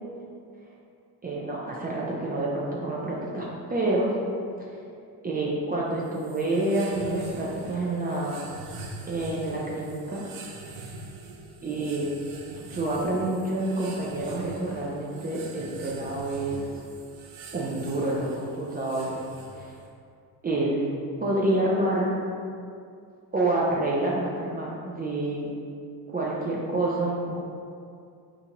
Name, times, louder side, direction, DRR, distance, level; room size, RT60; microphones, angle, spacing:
voice 1, 1.2-4.1 4.7-4.8 5.2-8.4 9.1-10.3 11.6-12.1 12.6-16.6 17.5-19.2 19.5-19.8 20.4-20.9 21.2-22.1 23.3-25.5 26.1-27.4, right 2 dB, 20° right, -5 dB, 0.4 m, -28 dB
sound 1, 6.0-19.9, right 3 dB, 75° right, 0.7 m, -44 dB
4.3 x 2.5 x 2.9 m, 2.4 s
supercardioid pair, 75°, 49 cm